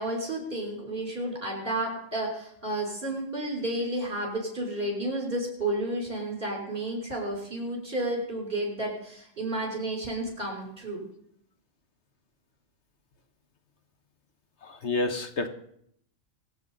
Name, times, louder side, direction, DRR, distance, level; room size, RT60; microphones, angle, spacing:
voice 1, 0.0-11.1, right 1 dB, 45° right, -1 dB, 5.6 m, -31 dB
voice 2, 14.6-15.5, left 2 dB, 60° left, 7 dB, 1.6 m, -29 dB
24.0 x 8.1 x 5.4 m, 0.69 s
omnidirectional pair, 1.4 m